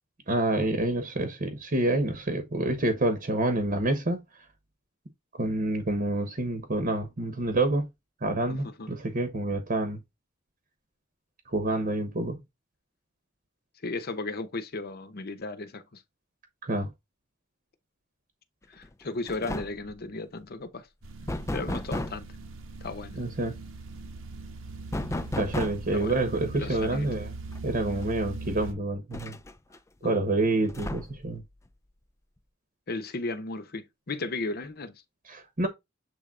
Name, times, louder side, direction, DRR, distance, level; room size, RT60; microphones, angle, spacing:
voice 1, 0.3-4.2 5.4-7.9 8.2-10.0 11.5-12.4 16.7-16.9 23.2-23.6 25.3-27.3 27.6-29.4 30.0-31.4 35.3-35.7, right 2 dB, 45° right, 1.1 m, -27 dB
voice 2, 8.5-8.9 13.8-16.0 18.7-20.9 21.5-22.3 22.8-23.2 25.9-26.2 26.5-27.1 30.0-30.3 32.9-35.0, left 3 dB, 50° left, 0.8 m, -35 dB
sound 1, 18.8-19.0 19.3-19.9 21.3-22.3 24.9-26.0 27.5-27.6 28.0-28.1 29.1-29.8 30.7-31.3, left 1 dB, 15° left, 0.4 m, -33 dB
sound 2, 21.0-28.7, right 3 dB, 80° right, 1.2 m, -41 dB
7.5 x 3.4 x 3.7 m
head